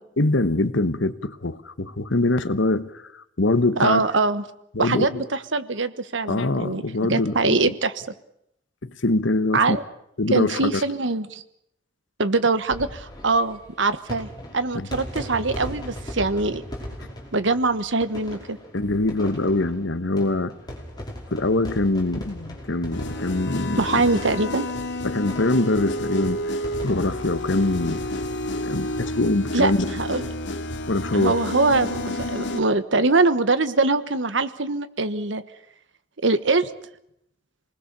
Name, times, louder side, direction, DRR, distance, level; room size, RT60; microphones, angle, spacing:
voice 1, 0.2-4.0 4.7-5.2 6.3-7.7 8.8-9.8 10.2-10.8 14.7-14.9 18.7-20.5 21.3-23.8 25.0-26.4 26.8-28.0 28.7-29.8 30.9-31.4, left 2 dB, 90° left, 1.3 m, -23 dB
voice 2, 3.8-4.4 4.8-6.8 7.1-7.9 9.5-9.8 10.3-11.4 12.2-14.3 14.5-16.6 17.3-18.6 23.8-24.6 29.5-30.3 31.1-35.4 36.2-36.7, right 3 dB, 80° right, 1.4 m, -23 dB
sound 1, 12.6-28.6 28.9-29.0 29.2-29.3 30.6-30.8, equal, 25° left, 5.4 m, -39 dB
sound 2, 22.9-32.6, left 1 dB, 70° left, 2.3 m, -30 dB
27.0 x 20.0 x 6.9 m
head